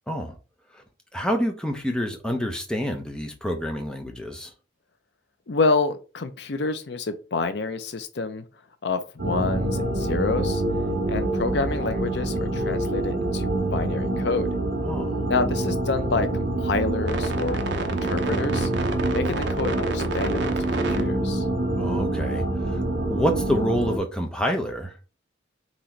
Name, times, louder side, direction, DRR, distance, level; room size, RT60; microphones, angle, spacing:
voice 1, 1.1-4.5 14.9-15.2 21.8-22.8 23.1-24.9, equal, 5° left, 0.7 m, -27 dB
voice 2, 5.5-8.4 8.8-10.6 11.1-14.5 15.3-17.6 18.0-18.7 19.1-21.5, left 3 dB, 60° left, 0.6 m, -28 dB
sound 1, 9.2-24.0, right 2 dB, 60° right, 0.7 m, -26 dB
3.9 x 3.0 x 4.4 m
head